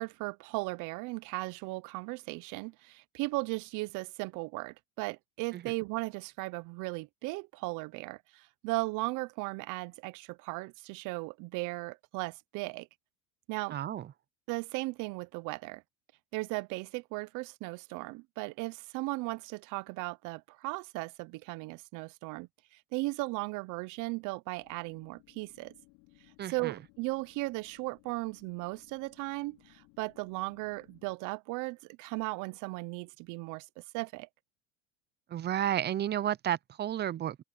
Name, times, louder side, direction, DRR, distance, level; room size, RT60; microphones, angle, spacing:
voice 1, 0.0-12.9 13.5-13.7 14.5-15.8 16.3-25.7 26.5-34.3, right 24 dB, 60° right, 0.8 m, -37 dB
voice 2, 13.7-14.1 26.4-26.8 35.3-37.4, right 11 dB, 30° right, 0.6 m, -32 dB
sound 1, 24.6-31.1, left 26 dB, 75° left, 3.8 m, -63 dB
open air
supercardioid pair, 110°, 34 cm